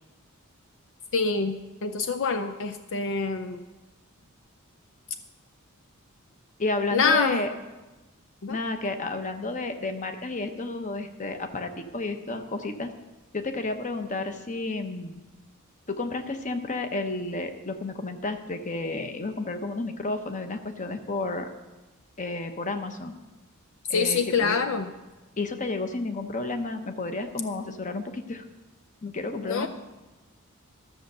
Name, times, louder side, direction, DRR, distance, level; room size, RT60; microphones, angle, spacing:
voice 1, 1.1-3.7 6.9-7.4 8.4-8.6 23.9-24.9 29.4-29.7, left 5 dB, 60° left, 7 dB, 0.5 m, -26 dB
voice 2, 6.6-7.5 8.5-12.9 13.3-15.2 15.9-21.5 22.2-23.1 23.9-24.6 25.4-28.4 29.0-29.7, left 2 dB, 35° left, 7 dB, 0.9 m, -31 dB
13.0 x 6.5 x 6.8 m, 1.1 s
head